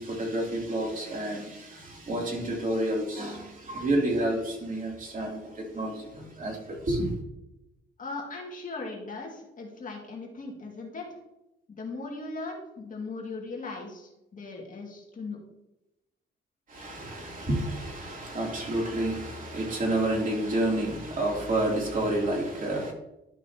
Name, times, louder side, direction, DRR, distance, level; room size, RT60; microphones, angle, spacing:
voice 1, 0.0-7.1 16.7-22.9, right 1 dB, 40° right, -1 dB, 3.0 m, -29 dB
voice 2, 8.0-11.2 11.7-15.4, left 3 dB, 40° left, -1 dB, 2.1 m, -38 dB
11.5 x 6.1 x 2.9 m, 0.91 s
cardioid pair, 90°, 20 cm